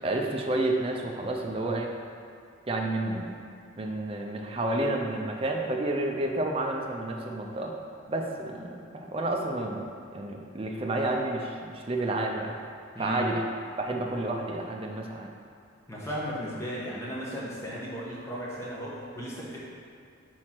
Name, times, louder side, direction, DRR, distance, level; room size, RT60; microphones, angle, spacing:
voice 1, 0.0-1.9 2.7-3.3 3.7-7.7 8.1-12.6 13.0-13.4 13.8-15.3, right 2 dB, 30° right, 1 dB, 0.5 m, -30 dB
voice 2, 12.9-13.3 15.9-19.6, equal, 15° left, -7 dB, 1.1 m, -35 dB
4.7 x 4.4 x 5.9 m, 2.4 s
head